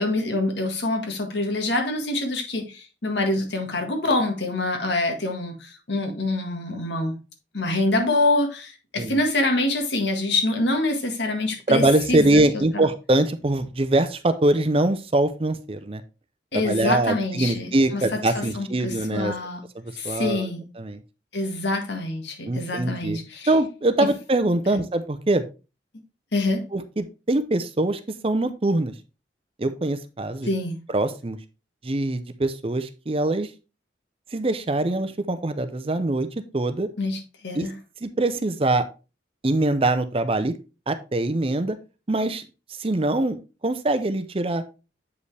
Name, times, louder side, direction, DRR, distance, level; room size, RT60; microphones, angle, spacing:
voice 1, 0.0-7.2 7.5-12.8 16.5-19.6 20.0-20.7 21.3-23.5 26.3-26.6 30.4-30.7 37.0-37.7, left 2 dB, 70° left, 1.6 m, -26 dB
voice 2, 11.7-16.0 16.5-19.3 20.0-21.0 22.5-23.2 23.5-25.4 26.7-28.9 29.6-30.5 30.9-31.4 31.8-33.5 34.3-36.3 36.5-36.9 37.5-37.7 38.0-38.9 39.4-40.5 40.9-41.8 42.1-42.4 42.8-43.4 43.6-44.6, right 2 dB, 30° right, 0.6 m, -23 dB
8.2 x 5.3 x 3.3 m
head